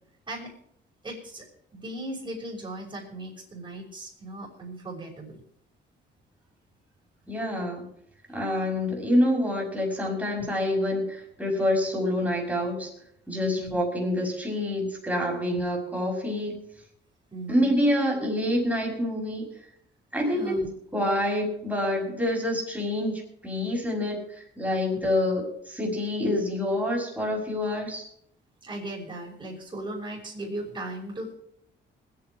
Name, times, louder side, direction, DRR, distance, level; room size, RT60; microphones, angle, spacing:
voice 1, 1.0-1.4 1.7-5.4 13.4-13.8 15.5-15.6 17.3-17.7 20.3-20.7 24.9-25.1 28.6-31.3, right 1 dB, 25° right, -6 dB, 5.9 m, -37 dB
voice 2, 7.3-7.9 8.3-12.9 13.3-16.6 17.5-19.5 20.1-20.6 20.9-28.1, left 1 dB, 5° right, -1 dB, 5.9 m, -27 dB
21.0 x 9.6 x 4.8 m, 0.69 s
cardioid pair, 90°, 20 cm